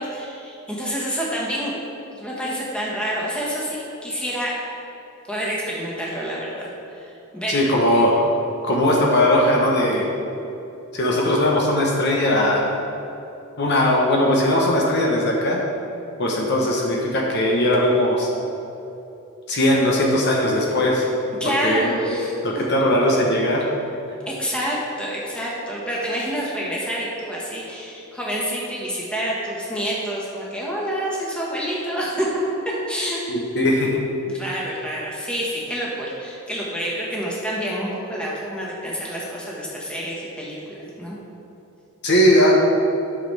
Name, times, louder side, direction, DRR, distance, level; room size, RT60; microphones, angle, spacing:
voice 1, 0.0-1.7 2.2-4.5 5.3-7.6 21.4-22.7 24.3-32.3 32.9-33.2 34.3-41.2, equal, 5° left, -5 dB, 1.4 m, -28 dB
voice 2, 7.5-8.3 8.6-10.1 10.9-12.7 13.6-15.6 16.2-18.3 19.5-21.1 21.6-22.0 22.4-23.7 33.3-34.0 42.0-42.5, left 1 dB, 50° left, -2 dB, 1.0 m, -19 dB
11.5 x 6.2 x 3.4 m, 2.9 s
head